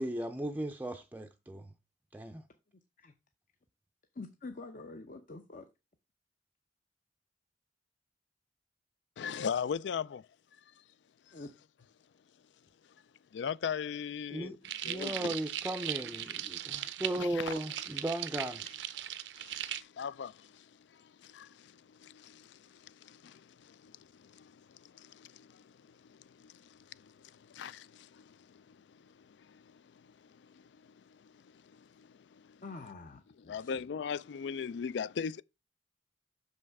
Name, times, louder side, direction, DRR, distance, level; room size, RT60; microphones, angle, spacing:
voice 1, 0.0-1.7 2.1-2.4 14.3-14.6 14.8-18.7, right 1 dB, 10° right, 0.5 m, -36 dB
voice 2, 4.2-5.7 11.3-11.5 32.6-33.8, left 3 dB, 50° left, 0.7 m, -46 dB
voice 3, 9.2-10.2 11.3-11.4 13.3-14.6 14.8-15.4 16.8-16.9 17.2-17.5 19.4-32.6 33.5-35.4, left 7 dB, 75° left, 0.4 m, -41 dB
sound 1, 14.6-19.8, right 11 dB, 80° right, 0.6 m, -39 dB
6.4 x 5.5 x 4.7 m
head